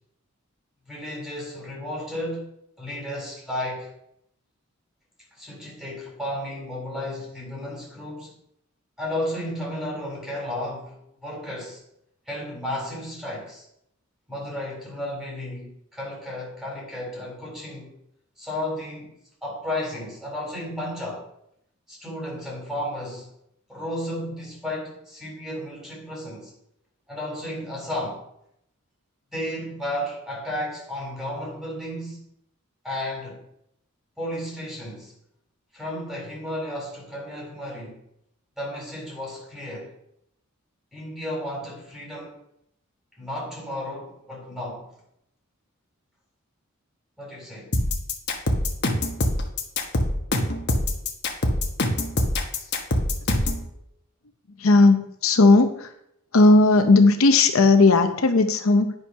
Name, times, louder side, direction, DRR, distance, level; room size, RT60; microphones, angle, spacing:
voice 1, 0.9-2.5 2.8-3.9 5.4-8.3 9.0-11.8 12.3-13.6 14.3-17.9 18.4-19.1 19.4-21.3 21.9-23.3 23.7-26.5 27.1-28.2 29.3-32.2 32.8-33.4 34.2-35.1 35.7-38.0 38.6-39.9 40.9-42.4 43.2-44.9 47.2-47.7, left 1 dB, ahead, -4 dB, 3.9 m, -33 dB
sound 1, 47.7-53.6, left 1 dB, 50° left, 1.3 m, -23 dB
voice 2, 54.6-55.9 56.3-58.9, left 3 dB, 70° left, 7 dB, 0.7 m, -16 dB
9.9 x 5.6 x 5.6 m, 0.77 s
head